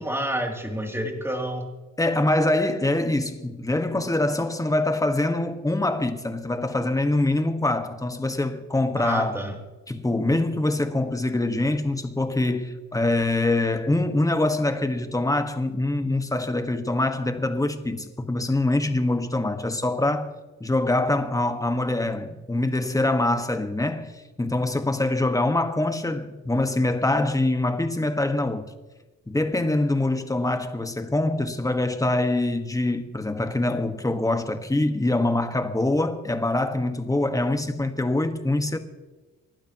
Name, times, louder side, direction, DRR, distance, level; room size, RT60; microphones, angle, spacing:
voice 1, 0.0-1.7 9.0-9.6, right 1 dB, 10° right, 3.0 m, -28 dB
voice 2, 2.0-9.4 9.9-20.3 20.6-24.1 24.4-28.7 29.3-38.8, left 2 dB, 10° left, 1.6 m, -24 dB
28.5 x 12.0 x 3.1 m
cardioid pair, 90°, 30 cm